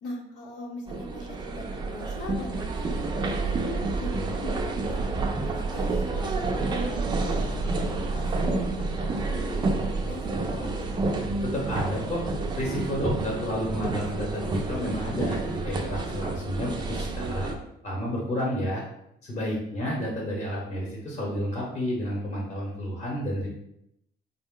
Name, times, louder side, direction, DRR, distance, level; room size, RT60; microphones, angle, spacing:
voice 1, 0.0-5.0 5.4-11.0 19.3-19.6, left 2 dB, 85° left, -2 dB, 0.8 m, -41 dB
sound 1, 0.9-17.6, right 3 dB, 25° right, 0.4 m, -29 dB
voice 2, 11.4-12.2 12.5-17.5 17.8-18.8 19.2-23.5, equal, 35° left, -2 dB, 0.9 m, -31 dB
4.3 x 2.1 x 3.6 m, 0.80 s
cardioid pair, 140°, 19 cm